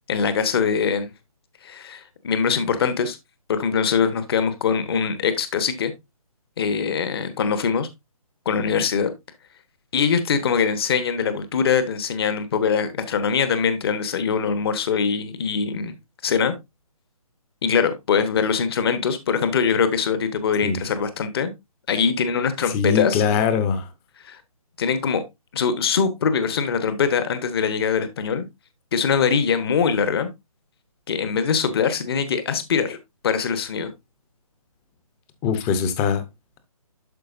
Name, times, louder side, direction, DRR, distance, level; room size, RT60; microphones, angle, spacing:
voice 1, 0.1-1.1 1.6-3.2 3.5-5.9 6.6-7.9 8.4-9.1 9.9-15.9 16.2-16.5 17.6-21.5 21.9-23.2 24.2-24.4 24.8-25.2 25.5-28.5 28.9-30.3 31.1-33.0 33.2-33.9, left 6 dB, 40° left, 1.1 m, -22 dB
voice 2, 22.7-23.9 35.4-36.2, left 7 dB, 15° left, 0.8 m, -22 dB
11.5 x 4.5 x 2.5 m
figure-of-eight pair, 150°, 19 cm